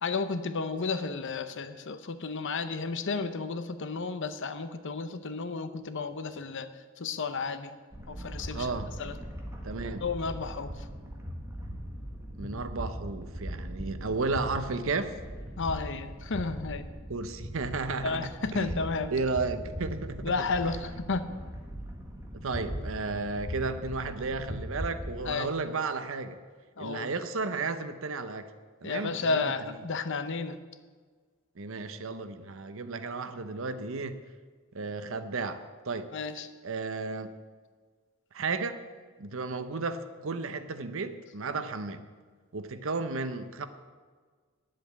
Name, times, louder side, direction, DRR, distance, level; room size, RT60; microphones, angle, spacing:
voice 1, 0.0-6.7 7.0-7.7 8.1-8.7 9.0-9.2 10.0-10.7 15.6-16.9 18.0-19.1 20.2-21.2 25.2-25.5 26.8-27.1 28.8-30.6 36.1-36.5, left 4 dB, 60° left, 11 dB, 0.8 m, -32 dB
sound 1, 7.9-25.3, equal, 15° right, 1.7 m, -40 dB
voice 2, 8.5-8.9 9.6-10.0 12.3-15.1 17.1-18.8 19.1-20.5 22.3-26.4 26.8-28.5 28.8-29.5 31.6-34.2 34.7-35.6 35.9-36.1 36.6-37.3 38.3-38.8 39.2-42.0 42.5-43.7, right 3 dB, 70° right, 10 dB, 0.8 m, -33 dB
10.0 x 7.7 x 8.3 m, 1.5 s
head